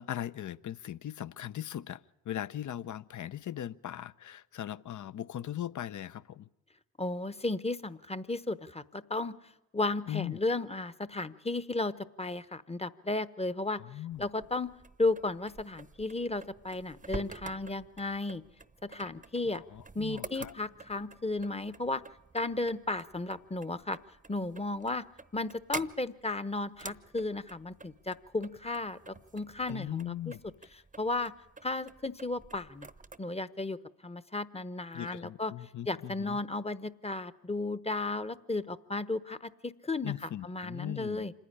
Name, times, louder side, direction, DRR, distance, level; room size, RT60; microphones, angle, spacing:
voice 1, 0.0-6.5 10.1-10.4 13.8-14.3 19.7-20.5 29.7-30.4 34.9-36.4 40.0-41.3, left 11 dB, 45° left, 17 dB, 0.7 m, -39 dB
voice 2, 7.0-9.3 9.7-13.8 14.2-14.7 15.0-18.4 18.8-19.6 19.9-22.0 22.3-24.0 24.3-25.0 25.3-30.3 31.0-31.3 31.6-32.9 33.2-33.8 34.0-35.5 35.9-41.3, left 2 dB, 15° left, 15 dB, 1.0 m, -34 dB
sound 1, 14.1-33.2, right 4 dB, 20° right, 0.9 m, -48 dB
26.5 x 10.0 x 10.0 m, 0.91 s
hypercardioid pair, 50°, 41 cm